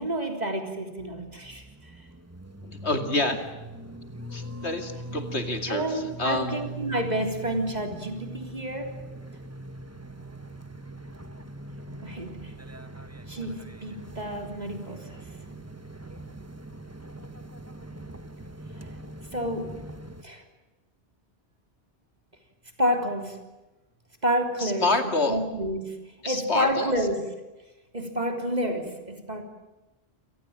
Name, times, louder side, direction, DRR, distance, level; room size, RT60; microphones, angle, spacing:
voice 1, 0.0-1.6 5.7-8.9 12.0-12.5 13.3-15.2 19.3-19.7 20.2-20.4 22.8-23.4 24.2-26.0 26.3-27.2 27.9-29.4, equal, 35° right, 4 dB, 3.7 m, -29 dB
sound 1, 1.0-20.2, right 2 dB, 15° right, 1.3 m, -42 dB
voice 2, 2.6-3.4 4.3-6.6 24.6-25.4 26.2-26.9, left 2 dB, 70° left, 7 dB, 2.8 m, -28 dB
28.5 x 18.5 x 8.8 m, 1.1 s
omnidirectional pair, 1.2 m